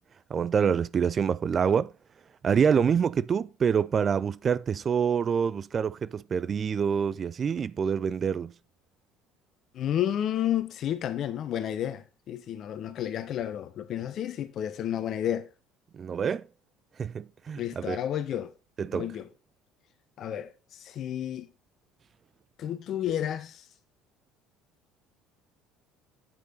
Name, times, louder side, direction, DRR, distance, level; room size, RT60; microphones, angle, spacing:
voice 1, 0.3-1.9 2.4-8.5 15.9-16.5 17.0-18.0 18.8-19.1, right 7 dB, 35° right, 0.4 m, -26 dB
voice 2, 9.7-15.5 17.6-18.5 18.9-19.3 20.2-20.5 20.8-21.5 22.6-23.6, left 10 dB, 45° left, 1.1 m, -31 dB
9.0 x 8.2 x 4.0 m
figure-of-eight pair, 60°, 0 cm